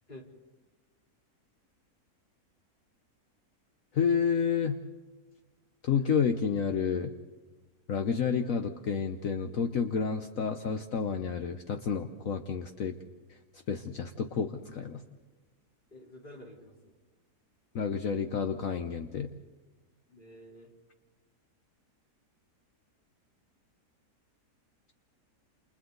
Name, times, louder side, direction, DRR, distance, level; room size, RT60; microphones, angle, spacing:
voice 1, 3.9-4.8 5.8-7.1 7.9-13.0 13.7-15.0 17.7-19.3, left 6 dB, 60° left, 6 dB, 1.3 m, -30 dB
voice 2, 15.9-17.0 20.1-20.7, left 1 dB, 30° left, -1 dB, 4.1 m, -50 dB
29.0 x 28.0 x 4.0 m, 1.3 s
omnidirectional pair, 1.7 m